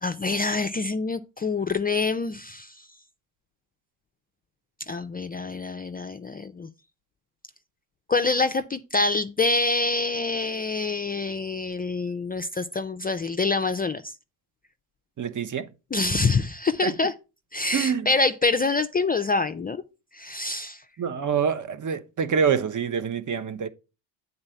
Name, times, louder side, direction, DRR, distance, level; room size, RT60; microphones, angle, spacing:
voice 1, 0.0-2.9 4.9-6.7 8.1-14.1 15.9-17.1 17.5-19.8 20.1-20.8, left 3 dB, 20° left, 0.4 m, -26 dB
voice 2, 15.2-15.7 16.8-16.9 17.7-18.1 21.0-23.7, right 7 dB, 40° right, 0.9 m, -26 dB
8.7 x 4.0 x 5.6 m
supercardioid pair, 65°, 47 cm